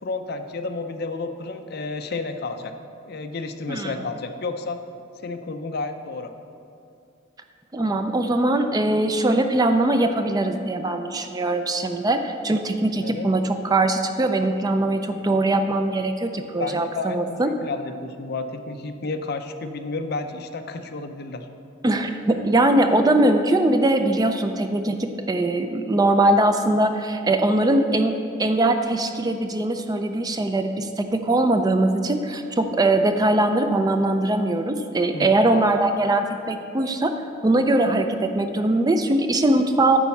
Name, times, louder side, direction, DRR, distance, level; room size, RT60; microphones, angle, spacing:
voice 1, 0.0-2.7 3.0-4.8 5.2-6.3 13.0-13.3 16.6-21.5 35.1-35.4, left 3 dB, 50° left, 7 dB, 0.5 m, -31 dB
voice 2, 7.7-17.5 21.8-28.1 28.4-37.1 37.4-40.0, right 2 dB, 20° right, 7 dB, 0.4 m, -21 dB
10.0 x 4.3 x 7.1 m, 2.6 s
head